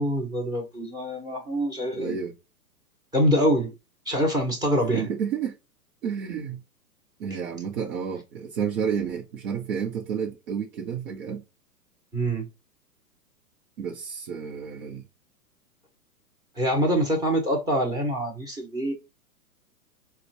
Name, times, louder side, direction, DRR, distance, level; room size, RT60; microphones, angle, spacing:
voice 1, 0.0-2.2 3.1-3.7 4.1-5.1 12.1-12.5 16.6-18.9, equal, 10° right, 0.7 m, -25 dB
voice 2, 1.9-2.3 4.9-5.6 6.0-6.6 7.2-11.4 13.8-15.0, right 7 dB, 60° right, 0.8 m, -31 dB
4.2 x 2.2 x 2.7 m
hypercardioid pair, 125°, 47 cm